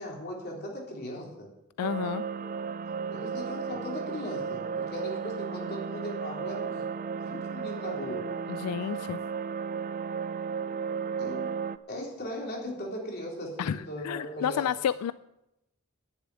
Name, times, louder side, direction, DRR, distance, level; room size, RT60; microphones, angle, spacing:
voice 1, 0.0-1.5 3.1-6.9 7.2-8.3 11.2-11.5 11.9-14.7, left 1 dB, 45° left, -2 dB, 3.7 m, -38 dB
voice 2, 1.8-2.2 8.5-9.2 13.6-15.1, left 8 dB, 90° left, 16 dB, 0.3 m, -30 dB
sound 1, 1.8-11.8, right 6 dB, 35° right, 0.4 m, -34 dB
11.0 x 7.0 x 9.6 m, 0.89 s
head